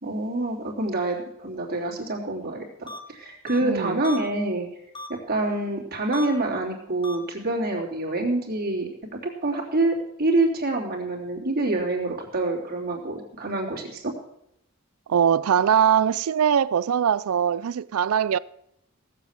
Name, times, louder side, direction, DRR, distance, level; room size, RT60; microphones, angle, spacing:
voice 1, 0.0-4.7 5.1-14.1, right 2 dB, 45° right, 3.3 m, -26 dB
sound 1, 2.9-3.0 3.5-3.6 4.0-4.2 4.9-5.1 6.1-6.3 7.0-7.2, left 2 dB, 25° left, 1.7 m, -35 dB
voice 2, 3.6-4.0 15.1-18.4, right 8 dB, 85° right, 0.4 m, -21 dB
17.5 x 7.6 x 7.5 m
head